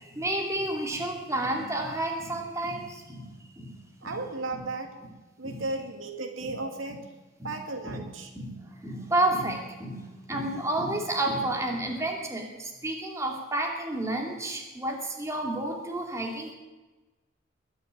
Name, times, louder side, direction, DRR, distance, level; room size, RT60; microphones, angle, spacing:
voice 1, 0.0-3.7 4.0-4.2 4.5-4.7 5.4-5.6 6.4-6.6 7.4-7.5 7.8-8.0 8.3-16.5, right 1 dB, 15° right, 0 dB, 2.7 m, -31 dB
voice 2, 4.0-4.9 5.4-7.1 7.4-8.3, right 2 dB, 90° right, 4 dB, 2.3 m, -35 dB
21.0 x 7.2 x 8.8 m, 1.2 s
head